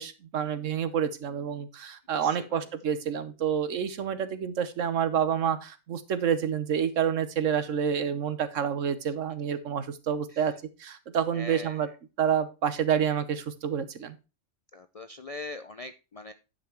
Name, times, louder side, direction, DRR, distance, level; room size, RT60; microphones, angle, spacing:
voice 1, 0.0-10.5 10.8-11.9 12.2-14.2, right 8 dB, 80° right, 12 dB, 1.3 m, -28 dB
voice 2, 2.1-2.6 10.3-10.5 11.3-12.0 14.7-16.3, left 2 dB, 55° left, 10 dB, 0.4 m, -42 dB
10.0 x 5.8 x 4.4 m, 0.29 s
omnidirectional pair, 1.3 m